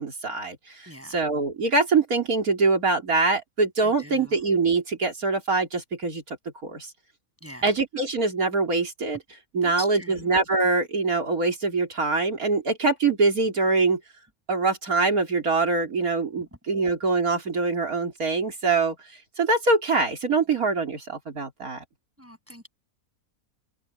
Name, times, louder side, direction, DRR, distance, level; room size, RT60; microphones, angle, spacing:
voice 1, 0.0-6.4 6.6-6.9 7.6-9.2 9.5-14.0 14.5-19.0 19.4-21.8, right 3 dB, 85° right, 3.9 m, -24 dB
voice 2, 0.9-1.3 3.8-4.4 7.4-7.8 9.6-10.3 16.3-16.4 22.2-22.7, equal, 10° right, 7.8 m, -42 dB
open air
omnidirectional pair, 1.5 m